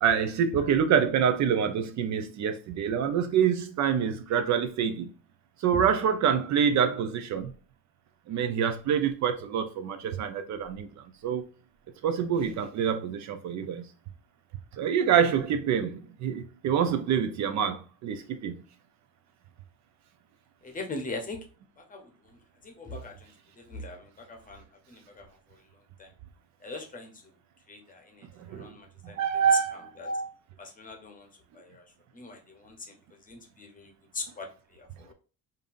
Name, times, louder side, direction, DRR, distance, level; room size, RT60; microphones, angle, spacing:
voice 1, 0.0-5.1 5.6-7.5 8.3-10.9 11.2-11.4 12.0-13.8 14.8-18.5 28.4-28.7 29.0-29.9, right 8 dB, 55° right, 0.6 m, -26 dB
voice 2, 20.6-21.4 21.8-26.1 26.6-27.3 27.7-31.3 31.5-31.9 32.1-33.0 33.2-35.1, left 2 dB, 25° left, 0.8 m, -41 dB
5.3 x 2.6 x 2.5 m
cardioid pair, 160°, 35 cm